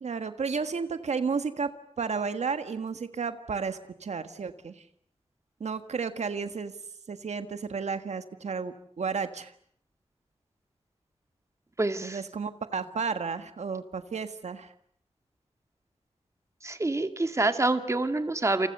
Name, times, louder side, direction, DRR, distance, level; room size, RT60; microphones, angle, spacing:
voice 1, 0.0-1.7 2.0-4.8 5.6-6.7 7.1-9.5 12.0-14.7, right 5 dB, 80° right, 9 dB, 1.7 m, -32 dB
voice 2, 11.8-12.2 16.6-18.7, right 2 dB, 25° right, 8 dB, 2.1 m, -27 dB
29.0 x 28.5 x 6.8 m, 0.63 s
wide cardioid pair, 110°, 11 cm